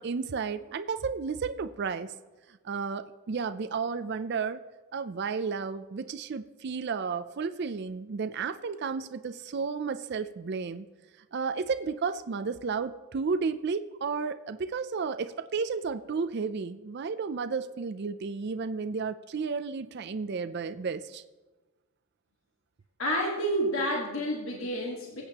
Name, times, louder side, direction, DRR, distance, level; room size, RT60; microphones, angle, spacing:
voice 1, 0.0-2.1 2.6-4.6 4.9-10.9 11.3-21.2, right 5 dB, 50° right, 11 dB, 0.4 m, -32 dB
voice 2, 23.0-25.2, equal, 65° left, -1 dB, 1.5 m, -29 dB
21.5 x 8.4 x 2.9 m, 1.2 s
head